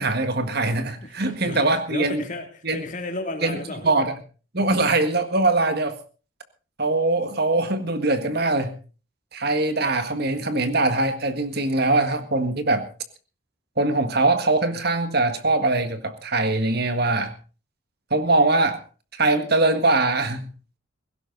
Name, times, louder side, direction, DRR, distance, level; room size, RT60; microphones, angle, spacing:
voice 1, 0.0-2.2 2.6-2.8 3.4-3.6 3.8-4.1 4.5-6.0 6.8-8.7 9.3-12.9 13.8-17.3 18.1-18.8 19.1-20.5, right 2 dB, 50° right, 9 dB, 1.8 m, -22 dB
voice 2, 1.0-3.9 4.5-4.7, left 2 dB, 40° left, 4 dB, 2.9 m, -34 dB
17.0 x 16.0 x 4.0 m, 0.35 s
head